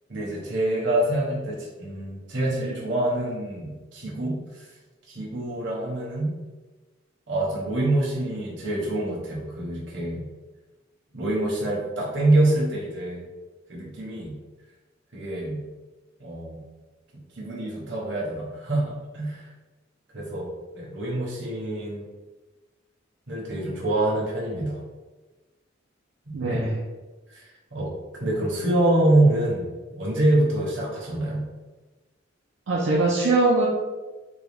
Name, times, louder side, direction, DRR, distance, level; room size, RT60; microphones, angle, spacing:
voice 1, 0.1-4.7 5.1-6.3 7.3-10.3 11.1-13.3 13.7-14.4 15.1-15.6 16.2-16.6 17.3-19.5 20.1-22.0 23.3-24.8 26.5-26.6 27.3-27.9 28.2-29.7 29.9-31.4, right 1 dB, 65° right, -3 dB, 1.1 m, -26 dB
voice 2, 26.3-26.8 32.7-33.7, right 2 dB, 85° right, -5 dB, 0.6 m, -21 dB
3.9 x 2.3 x 3.4 m, 1.2 s
head